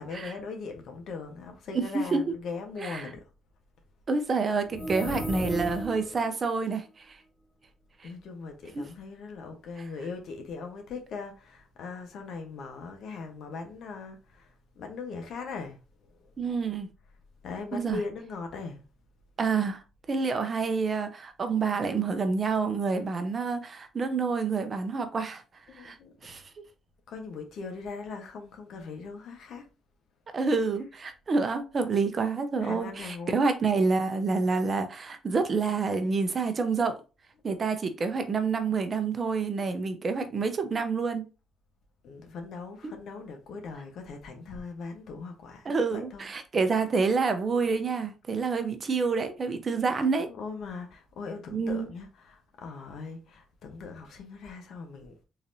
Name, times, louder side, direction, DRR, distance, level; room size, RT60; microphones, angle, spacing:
voice 1, 0.0-3.2 8.0-14.5 14.8-15.8 17.4-18.8 25.7-26.1 27.1-29.7 32.6-33.5 42.0-46.3 50.3-55.1, left 4 dB, 70° left, 1.0 m, -40 dB
voice 2, 1.7-2.3 2.8-3.1 4.1-7.2 8.7-8.8 9.8-9.9 16.4-16.9 17.7-18.0 19.4-19.8 20.1-25.4 25.7-26.0 26.2-26.4 30.3-37.0 37.4-41.2 42.8-42.9 45.6-50.3 51.5-51.9, right 4 dB, 40° right, 0.7 m, -28 dB
sound 1, 4.6-6.2, equal, 50° left, 1.4 m, -34 dB
3.9 x 3.2 x 2.7 m
cardioid pair, 90°, 0 cm